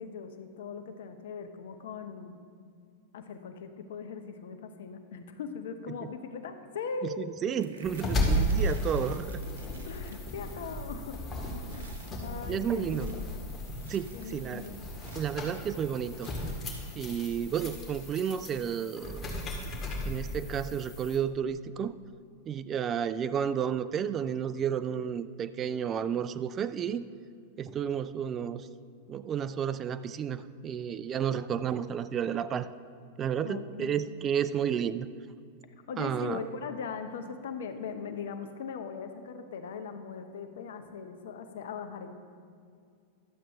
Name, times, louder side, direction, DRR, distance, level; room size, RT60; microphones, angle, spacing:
voice 1, 0.0-2.4 3.1-7.3 9.9-11.2 11.7-13.5 14.1-14.8 33.4-34.0 35.9-42.2, left 5 dB, 70° left, 8 dB, 0.8 m, -40 dB
voice 2, 7.0-9.4 12.5-13.1 13.9-14.7 15.1-16.3 17.0-19.4 20.1-21.9 22.5-27.0 27.6-28.7 29.1-32.7 33.2-35.1 36.0-36.4, right 8 dB, 30° right, 14 dB, 0.3 m, -32 dB
sound 1, 7.5-10.9 11.1-11.4 11.6-12.2 12.7-15.4 16.2-16.7 17.4-17.5 17.9-18.1, right 4 dB, 75° right, 1.0 m, -55 dB
sound 2, 7.8-21.2, equal, 25° left, 1.9 m, -35 dB
12.0 x 7.5 x 3.6 m, 2.3 s
hypercardioid pair, 95°, 0 cm